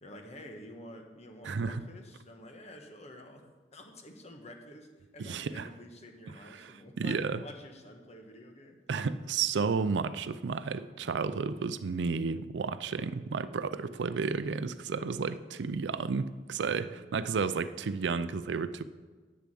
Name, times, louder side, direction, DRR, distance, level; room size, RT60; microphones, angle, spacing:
voice 1, 0.0-8.8, left 1 dB, 40° left, 4 dB, 1.3 m, -49 dB
voice 2, 1.4-1.8 5.2-5.7 6.5-7.4 8.9-18.8, right 5 dB, 90° right, 14 dB, 0.4 m, -32 dB
9.6 x 6.9 x 7.6 m, 1.4 s
head